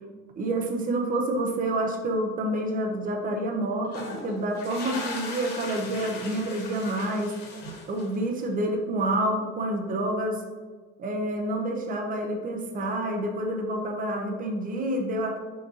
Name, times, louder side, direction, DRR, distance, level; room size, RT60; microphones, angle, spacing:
voice 1, 0.3-7.3 7.9-10.4 11.0-15.4, right 1 dB, 25° right, 3 dB, 0.8 m, -28 dB
sound 1, 3.8-8.4, left 2 dB, 30° left, 1.5 m, -38 dB
6.5 x 5.2 x 2.9 m, 1.4 s
cardioid pair, 150°, 34 cm